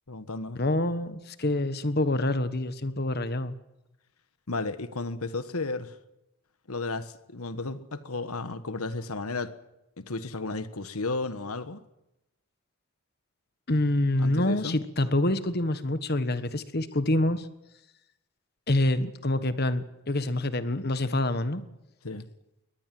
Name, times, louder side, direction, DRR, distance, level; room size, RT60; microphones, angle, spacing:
voice 1, 0.1-0.6 4.5-5.9 6.7-9.5 10.0-11.8 14.2-14.8 22.0-22.3, left 3 dB, 80° left, 1.4 m, -33 dB
voice 2, 0.6-3.5 13.7-17.5 18.7-21.6, left 1 dB, 45° left, 1.3 m, -26 dB
23.0 x 19.0 x 7.8 m
head